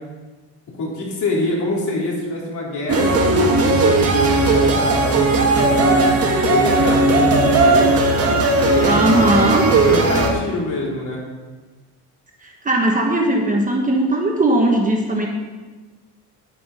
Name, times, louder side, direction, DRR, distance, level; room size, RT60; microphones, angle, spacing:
voice 1, 0.8-6.1 6.5-9.0 9.7-11.2, left 2 dB, 50° left, -3 dB, 3.6 m, -25 dB
sound 1, 2.9-10.3, right 2 dB, 40° right, 1.5 m, -16 dB
voice 2, 8.8-9.6 12.4-15.3, right 1 dB, 20° right, 0 dB, 1.2 m, -18 dB
10.0 x 8.6 x 5.4 m, 1.3 s
cardioid pair, 150°, 39 cm